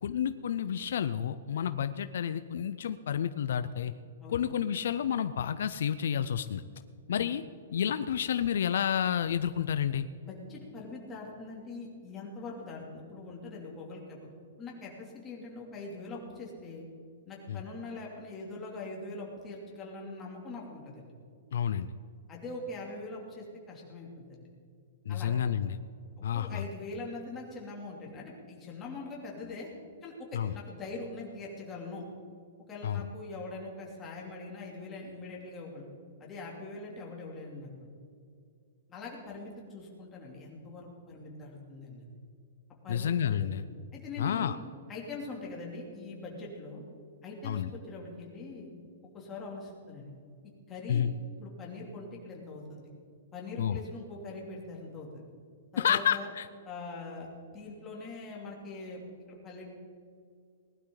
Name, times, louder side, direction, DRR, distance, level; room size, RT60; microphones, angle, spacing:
voice 1, 0.0-3.9 4.3-6.6 7.1-7.4 7.7-10.1 17.5-17.6 21.5-21.9 25.1-25.8 26.2-26.6 30.3-30.5 32.8-33.0 42.9-43.6 44.2-44.6 47.4-47.7 50.9-51.1 53.6-53.8 55.8-56.5, left 9 dB, 70° left, 12 dB, 0.5 m, -30 dB
voice 2, 10.2-14.3 14.6-16.9 17.2-21.1 22.3-24.5 25.1-25.3 26.2-29.7 30.0-32.0 32.7-35.8 36.2-37.9 38.9-42.0 42.8-43.6 43.9-44.5 44.9-46.8 47.2-48.7 49.1-50.1 50.7-51.0 51.3-52.9 53.3-55.2 55.7-56.3 56.6-59.0 59.3-59.7, left 3 dB, 15° left, -3 dB, 2.8 m, -42 dB
19.5 x 12.0 x 4.0 m, 2.3 s
hypercardioid pair, 165°, 0 cm